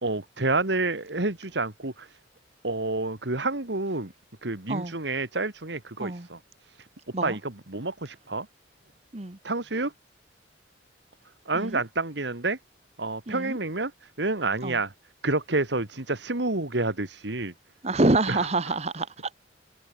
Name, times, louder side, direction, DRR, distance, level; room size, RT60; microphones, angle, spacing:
voice 1, 0.0-2.2 2.6-4.1 4.4-6.9 7.2-8.5 9.4-9.9 11.5-12.6 13.0-14.9 15.2-17.5 18.3-18.4 18.7-18.8, right 2 dB, 70° right, 2.2 m, -29 dB
voice 2, 13.3-13.6 14.6-14.8 17.8-19.1, right 2 dB, 35° right, 1.2 m, -26 dB
head